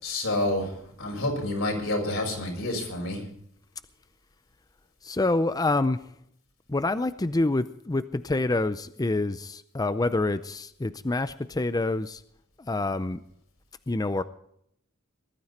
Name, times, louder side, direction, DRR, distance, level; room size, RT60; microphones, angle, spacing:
voice 1, 0.0-3.2, left 1 dB, 70° left, 1 dB, 6.3 m, -29 dB
voice 2, 5.0-6.1 6.7-12.2 12.7-13.2 13.9-14.2, left 2 dB, 20° left, 13 dB, 0.5 m, -27 dB
20.0 x 13.0 x 4.2 m, 0.70 s
head